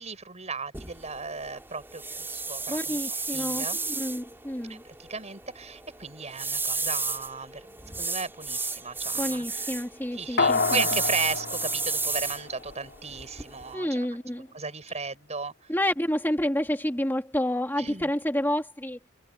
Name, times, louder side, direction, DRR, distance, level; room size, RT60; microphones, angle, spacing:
voice 1, 0.0-3.8 4.7-9.6 10.1-14.1 14.5-15.7 17.8-18.1, right 4 dB, 30° right, 6.6 m, -36 dB
sound 1, 0.7-13.7, right 3 dB, 10° right, 5.6 m, -33 dB
voice 2, 2.7-4.8 7.8-8.0 9.2-10.8 13.7-14.5 15.7-19.0, left 1 dB, 10° left, 2.7 m, -29 dB
sound 2, 10.4-12.9 13.3-13.4, left 4 dB, 50° left, 3.4 m, -28 dB
head